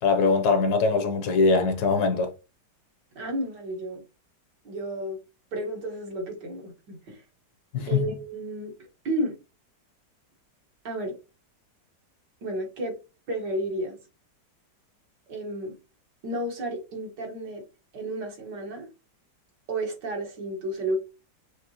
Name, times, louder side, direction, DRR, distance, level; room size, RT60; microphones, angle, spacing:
voice 1, 0.0-2.3 7.7-8.1, left 4 dB, 65° left, 1.3 m, -22 dB
voice 2, 3.2-4.0 4.7-5.2 5.5-7.2 7.9-9.4 10.8-11.1 12.4-13.0 13.3-14.0 15.3-15.7 16.2-17.6 17.9-18.9 19.7-21.0, right 1 dB, 75° right, 2.2 m, -32 dB
6.3 x 2.9 x 2.9 m
omnidirectional pair, 1.9 m